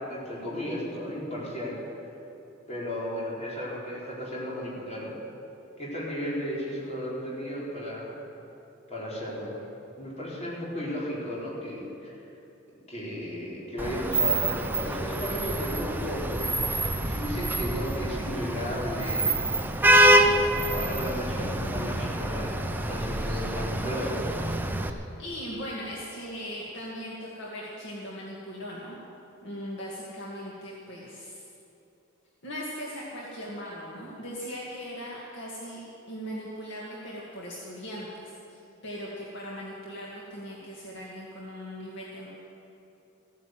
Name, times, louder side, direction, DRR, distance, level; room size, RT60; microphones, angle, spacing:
voice 1, 0.0-1.8 2.7-5.2 5.8-8.1 8.9-9.5 10.0-12.1 12.9-19.3 20.7-22.6 22.9-24.2 24.8-25.0, equal, 35° left, -6 dB, 4.1 m, -34 dB
Vehicle horn car horn honking / Traffic noise roadway noise, 13.8-24.9, right 1 dB, 10° right, 0.7 m, -26 dB
voice 2, 25.2-29.0 29.4-31.4 32.4-35.8 36.1-42.3, equal, 60° left, -5 dB, 2.2 m, -39 dB
15.0 x 9.5 x 7.7 m, 2.9 s
head